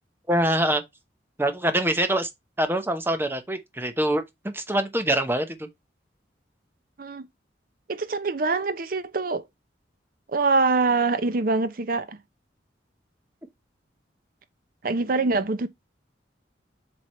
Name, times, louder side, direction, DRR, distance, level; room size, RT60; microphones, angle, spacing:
voice 1, 0.3-0.8 1.4-2.3 2.6-5.7, right 1 dB, 10° right, 0.8 m, -24 dB
voice 2, 7.9-9.4 10.3-12.2 14.8-15.7, right 3 dB, 50° right, 0.7 m, -24 dB
7.6 x 3.5 x 4.2 m
head